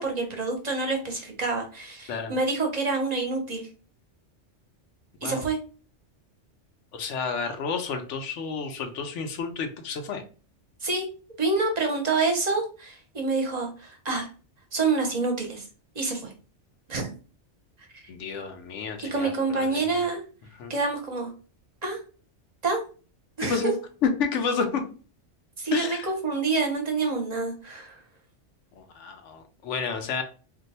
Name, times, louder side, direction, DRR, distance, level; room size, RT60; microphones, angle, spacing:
voice 1, 0.0-3.7 5.2-5.6 10.8-11.1 11.4-14.3 14.7-15.7 15.9-16.3 16.9-17.1 19.1-20.2 20.7-21.3 21.8-22.0 22.6-22.8 23.4-23.6 25.6-28.0, right 3 dB, 40° right, 2 dB, 0.8 m, -27 dB
voice 2, 6.9-10.2 18.1-20.0 20.6-20.7 23.4-23.8 24.0-24.8 25.7-26.1 28.8-30.2, left 5 dB, 85° left, 5 dB, 1.0 m, -30 dB
2.6 x 2.2 x 4.0 m, 0.36 s
omnidirectional pair, 1.2 m